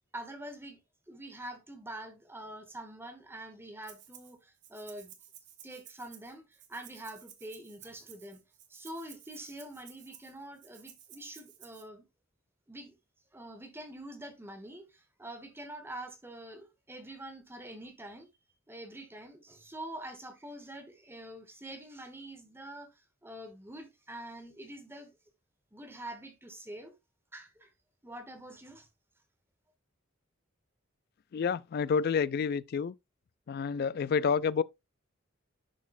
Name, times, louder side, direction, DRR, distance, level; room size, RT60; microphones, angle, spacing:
voice 1, 0.1-0.8 1.1-5.1 5.6-8.4 8.7-12.1 12.7-12.9 13.3-18.3 18.7-25.1 25.7-26.9 27.3-27.7 28.0-28.9, right 1 dB, 10° right, 1.3 m, -45 dB
Rattle (instrument), 3.8-4.3 4.6-11.8, right 10 dB, 60° right, 1.3 m, -54 dB
voice 2, 31.3-32.9 33.5-34.6, left 6 dB, 50° left, 0.3 m, -29 dB
11.0 x 4.2 x 2.5 m
head